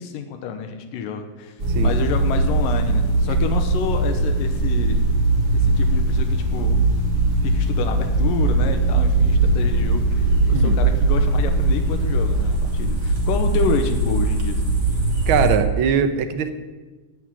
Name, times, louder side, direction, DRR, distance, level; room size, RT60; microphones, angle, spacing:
voice 1, 0.0-5.0 5.5-6.8 7.4-14.7, left 6 dB, 90° left, 5 dB, 2.7 m, -29 dB
sound 1, 1.6-15.5, right 2 dB, 30° right, 2.8 m, -20 dB
voice 2, 15.3-16.5, right 7 dB, 70° right, 8 dB, 1.2 m, -21 dB
17.5 x 6.2 x 9.8 m, 1.3 s
omnidirectional pair, 3.8 m